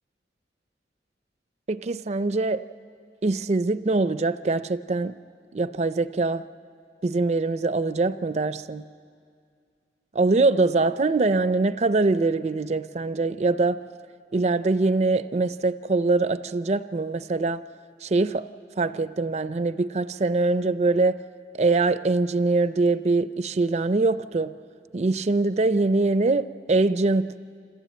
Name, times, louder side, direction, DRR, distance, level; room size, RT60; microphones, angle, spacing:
voice 1, 1.7-2.6 3.2-5.2 5.5-6.5 7.0-8.9 10.1-13.8 14.3-17.6 18.0-18.5 18.8-21.2 21.6-24.5 24.9-27.4, right 3 dB, 40° right, 13 dB, 0.4 m, -23 dB
26.5 x 15.0 x 8.5 m, 2.3 s
head